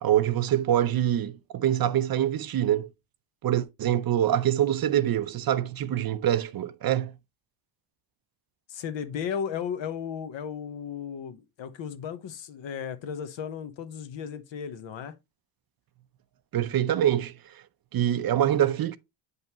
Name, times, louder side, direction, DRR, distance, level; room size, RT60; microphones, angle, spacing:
voice 1, 0.0-2.9 3.4-7.1 16.5-17.3 17.9-19.0, right 11 dB, 45° right, 0.6 m, -25 dB
voice 2, 8.7-15.1, left 7 dB, 65° left, 1.0 m, -35 dB
8.1 x 5.4 x 2.9 m
cardioid pair, 120°, 49 cm